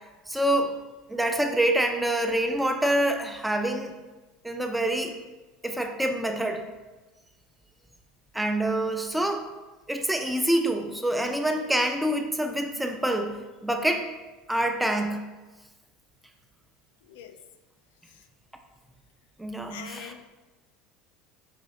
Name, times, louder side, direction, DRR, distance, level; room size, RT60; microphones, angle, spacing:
voice 1, 0.3-0.7 1.1-3.9 4.4-5.2 5.6-6.6 8.3-9.5 9.9-14.0 14.5-15.2 19.4-20.1, right 1 dB, 5° right, 4 dB, 0.4 m, -26 dB
voice 2, 17.0-17.4 18.1-18.3 19.7-20.4, left 8 dB, 85° left, 8 dB, 0.3 m, -44 dB
5.0 x 2.4 x 3.6 m, 1.2 s
supercardioid pair, 115°, 0 cm